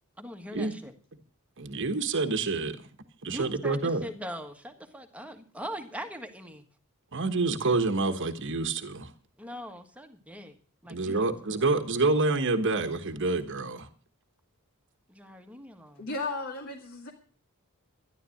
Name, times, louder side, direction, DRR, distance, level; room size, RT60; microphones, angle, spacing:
voice 1, 0.2-0.9 3.3-6.6 9.4-10.6 10.8-11.7 15.1-16.1, equal, 5° right, 6 dB, 1.5 m, -41 dB
voice 2, 1.6-2.9 3.2-4.0 7.1-9.1 10.9-13.9, right 3 dB, 55° right, 8 dB, 1.2 m, -27 dB
voice 3, 16.0-17.1, left 3 dB, 60° left, -2 dB, 2.3 m, -34 dB
13.0 x 11.0 x 6.3 m, 0.41 s
head